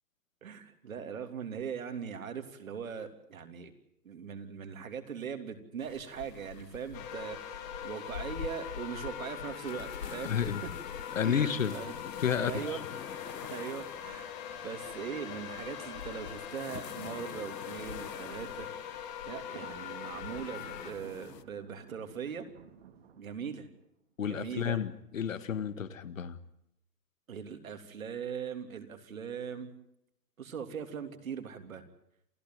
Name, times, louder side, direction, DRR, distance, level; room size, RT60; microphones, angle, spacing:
voice 1, 0.4-3.7 4.0-10.3 10.6-10.7 11.2-11.9 12.3-12.8 13.5-14.3 14.6-18.7 19.2-22.5 23.2-23.7 24.2-24.8 27.3-29.7 30.4-31.8, right 7 dB, 55° right, 7 dB, 3.4 m, -40 dB
sound 1, 5.8-21.4, left 7 dB, 85° left, 1.4 m, -46 dB
sound 2, 6.9-20.9, left 9 dB, 15° left, 1.9 m, -42 dB
voice 2, 10.2-10.6 11.2-11.8 12.2-12.8 24.2-26.4, left 8 dB, 55° left, 13 dB, 1.8 m, -31 dB
Thunder, 19.3-23.9, right 8 dB, 40° right, 2.5 m, -53 dB
28.5 x 15.0 x 9.4 m, 0.75 s
hypercardioid pair, 165°, 48 cm